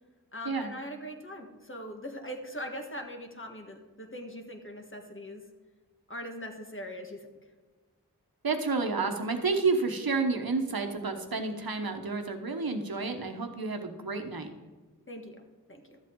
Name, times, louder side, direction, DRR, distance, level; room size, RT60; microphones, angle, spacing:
voice 1, 0.3-5.4 6.1-7.3 15.1-16.0, equal, 35° left, 3 dB, 1.5 m, -41 dB
voice 2, 8.4-14.5, right 4 dB, 90° right, 6 dB, 1.1 m, -30 dB
12.5 x 7.8 x 3.8 m, 1.3 s
wide cardioid pair, 50°, 35 cm